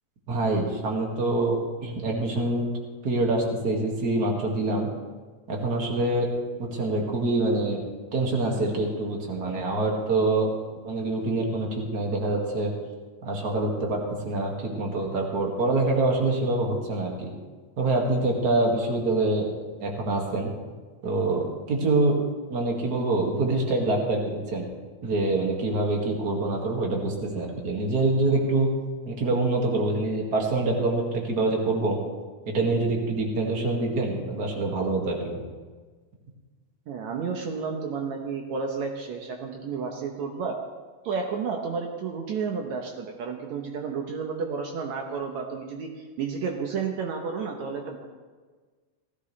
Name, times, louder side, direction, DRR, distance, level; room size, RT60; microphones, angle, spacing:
voice 1, 0.3-2.7 3.0-4.9 5.5-6.3 6.6-7.8 8.1-10.5 10.8-12.7 13.2-17.3 17.8-19.5 19.8-20.5 21.0-22.2 22.5-24.6 25.0-28.7 29.1-32.0 32.5-35.4, right 2 dB, 35° right, 0 dB, 2.3 m, -25 dB
voice 2, 36.9-40.6 41.0-48.1, right 5 dB, 70° right, 2 dB, 2.3 m, -31 dB
17.0 x 15.5 x 3.3 m, 1.4 s
omnidirectional pair, 3.4 m